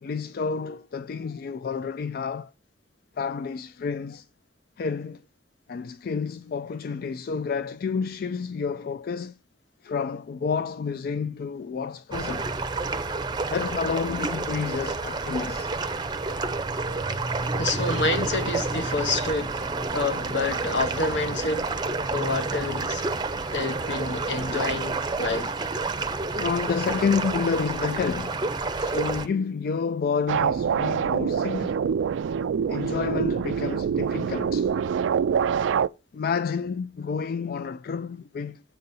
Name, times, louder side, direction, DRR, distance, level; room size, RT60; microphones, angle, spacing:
voice 1, 0.0-2.5 3.2-4.3 4.8-5.2 5.7-9.4 9.8-12.5 13.5-15.7 23.4-23.5 26.3-28.4 28.7-31.8 32.7-34.7 36.1-38.6, left 5 dB, 50° left, 0.3 m, -29 dB
sound 1, 12.1-29.3, right 3 dB, 25° right, 0.6 m, -29 dB
voice 2, 17.6-19.6 19.9-21.7 22.1-23.1 23.5-25.6, left 3 dB, 70° left, 1.1 m, -28 dB
sound 2, 30.3-35.9, right 7 dB, 80° right, 0.3 m, -25 dB
8.5 x 4.1 x 5.4 m
head